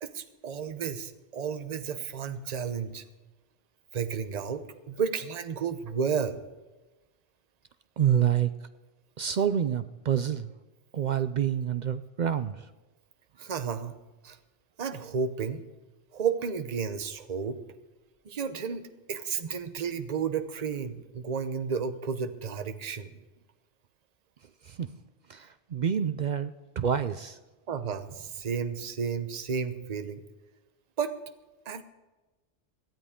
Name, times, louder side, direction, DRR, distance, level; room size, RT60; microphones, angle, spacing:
voice 1, 0.0-3.0 3.9-6.4 13.4-13.9 14.2-14.4 14.8-15.6 16.1-17.6 18.2-23.1 27.7-30.2 31.0-31.1 31.6-31.8, right 6 dB, 40° right, 10 dB, 0.9 m, -32 dB
voice 2, 8.0-8.5 9.2-10.5 10.9-12.6 24.7-24.9 25.3-27.4, right 9 dB, 55° right, 12 dB, 0.5 m, -27 dB
18.0 x 12.5 x 3.7 m, 1.1 s
omnidirectional pair, 1.2 m